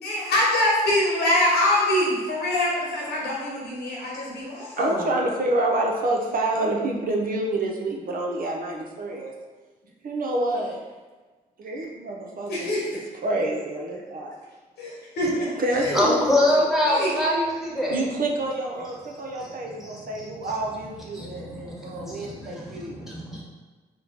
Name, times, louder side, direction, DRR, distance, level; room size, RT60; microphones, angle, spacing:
voice 1, 0.0-5.1 12.5-12.8 14.8-15.5 15.8-16.2 16.9-17.1, left 1 dB, 80° left, -4 dB, 1.2 m, -24 dB
voice 2, 4.8-9.3 10.0-10.8 11.6-14.4 15.6-16.7 17.9-23.1, right 2 dB, 55° right, 0 dB, 0.7 m, -28 dB
voice 3, 15.9-18.0 19.8-19.9 20.4-20.5 21.1-23.4, left 1 dB, ahead, -4 dB, 1.4 m, -24 dB
4.4 x 2.2 x 3.9 m, 1.3 s
supercardioid pair, 55°, 17 cm